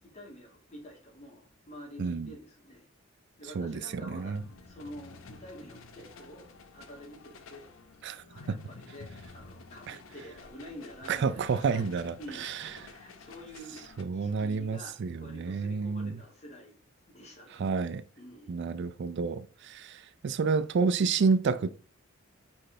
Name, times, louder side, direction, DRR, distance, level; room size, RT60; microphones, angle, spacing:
voice 1, 0.0-2.9 3.4-7.7 8.3-11.8 12.2-12.5 12.8-13.8 14.1-16.8 17.1-17.6 18.2-18.7, equal, 35° left, 2.5 m, -48 dB
voice 2, 2.0-2.3 3.5-4.4 8.0-8.6 9.9-10.0 11.1-12.9 14.0-16.2 17.5-18.0 18.5-21.7, right 5 dB, 60° right, 0.4 m, -30 dB
sound 1, 4.2-14.0, left 4 dB, 80° left, 0.7 m, -51 dB
4.9 x 4.4 x 4.3 m
head